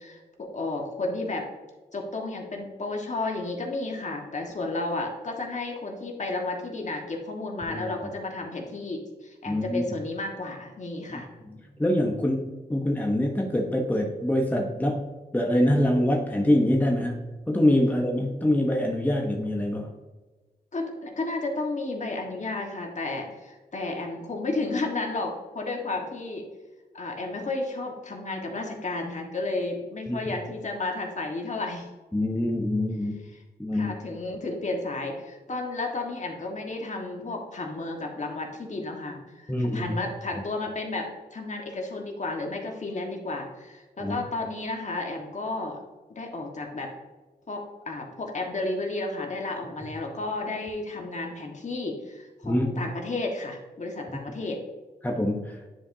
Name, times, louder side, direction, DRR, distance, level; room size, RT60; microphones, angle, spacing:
voice 1, 0.0-1.5 1.9-11.3 20.7-26.5 26.9-31.9 33.7-45.8 46.1-46.9 47.5-54.6, left 2 dB, 45° left, 1 dB, 1.5 m, -32 dB
voice 2, 9.5-9.8 11.1-11.2 11.8-15.0 15.3-19.9 30.1-30.3 32.1-33.2 33.6-33.9 39.5-39.9 44.0-44.2 52.4-52.7 55.0-55.6, left 1 dB, 10° left, 0 dB, 0.9 m, -25 dB
9.8 x 5.1 x 2.7 m, 1.3 s
cardioid pair, 80°, 17 cm